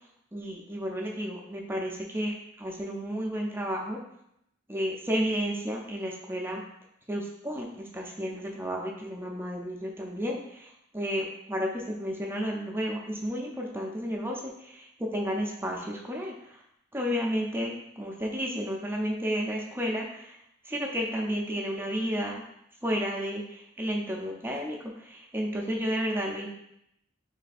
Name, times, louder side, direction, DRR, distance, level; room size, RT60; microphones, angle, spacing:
voice 1, 0.3-4.0 4.7-6.6 7.1-10.7 10.9-14.5 15.0-16.3 16.9-20.2 20.7-22.4 22.8-23.4 23.8-24.8 25.1-26.5, equal, 10° right, 0 dB, 0.5 m, -32 dB
3.2 x 3.2 x 4.1 m, 0.78 s
head